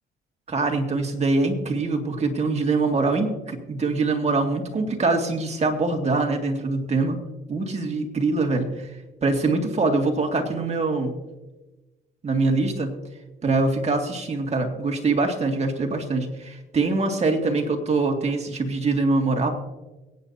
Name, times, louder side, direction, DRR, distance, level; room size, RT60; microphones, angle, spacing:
voice 1, 0.5-7.2 7.5-9.0 9.2-11.1 12.2-12.9 13.4-19.5, right 3 dB, 35° right, 3 dB, 2.2 m, -23 dB
23.0 x 9.5 x 2.8 m, 1.1 s
cardioid pair, 90°, 20 cm